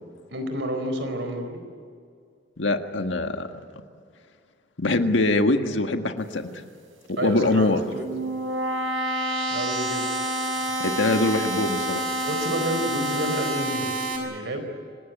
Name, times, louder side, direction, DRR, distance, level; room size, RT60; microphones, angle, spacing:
voice 1, 0.3-1.6 7.2-8.1 9.5-10.1 12.3-13.9 14.2-14.7, right 1 dB, 65° right, 7 dB, 4.4 m, -29 dB
voice 2, 2.6-3.5 4.8-6.5 7.2-7.8 10.8-12.0, left 2 dB, 70° left, 6 dB, 1.7 m, -23 dB
sound 1, 7.7-14.2, right 1 dB, 85° right, 6.2 m, -28 dB
26.5 x 19.5 x 9.3 m, 2.2 s
head